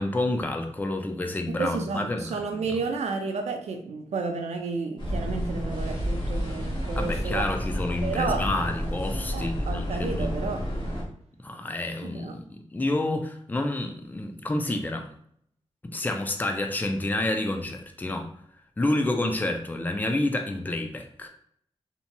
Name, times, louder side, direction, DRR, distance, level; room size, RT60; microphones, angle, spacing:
voice 1, 0.0-2.8 7.0-10.3 11.4-15.1 15.9-18.3 18.8-21.3, left 2 dB, 15° left, 4 dB, 0.4 m, -29 dB
voice 2, 1.5-7.5 8.0-8.4 9.3-10.6 12.0-12.4, right 4 dB, 90° right, 4 dB, 0.4 m, -31 dB
sound 1, 5.0-11.0, equal, 45° left, 1.0 m, -30 dB
2.9 x 2.6 x 2.2 m, 0.66 s
wide cardioid pair, 80°, 11 cm